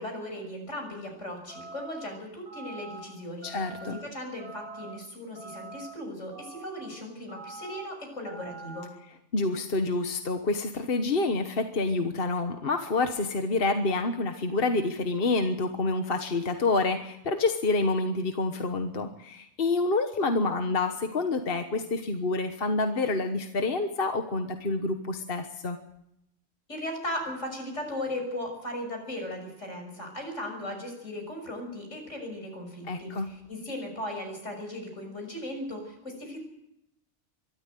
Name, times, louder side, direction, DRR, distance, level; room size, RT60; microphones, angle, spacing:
voice 1, 0.0-3.5 3.8-8.9 26.7-36.4, left 1 dB, 85° left, 3 dB, 6.6 m, -37 dB
sound 1, 1.5-2.0 2.5-3.0 3.4-4.0 4.4-4.9 5.4-5.9 6.3-6.9 7.3-7.8 8.3-8.8, right 3 dB, 50° right, 7.5 m, -44 dB
voice 2, 3.4-4.0 9.3-25.8 32.9-33.3, left 3 dB, 50° left, 6 dB, 1.5 m, -28 dB
23.0 x 13.5 x 9.1 m, 0.81 s
omnidirectional pair, 1.2 m